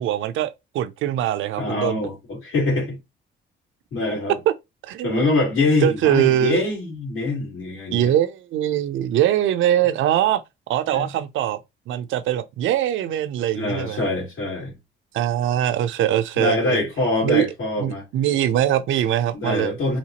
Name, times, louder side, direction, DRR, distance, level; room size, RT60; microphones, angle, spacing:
voice 1, 0.0-2.0 4.5-4.6 4.8-5.2 5.8-6.6 7.9-10.4 10.7-11.6 11.9-14.0 15.1-16.8 17.2-17.5 17.8-19.8, right 11 dB, 80° right, 0.5 m, -22 dB
voice 2, 1.6-3.0 3.9-4.4 5.0-8.1 10.9-11.1 13.5-14.7 16.4-18.0 19.3-20.0, left 2 dB, 80° left, 2.3 m, -24 dB
4.2 x 2.4 x 2.9 m
cardioid pair, 90°, 20 cm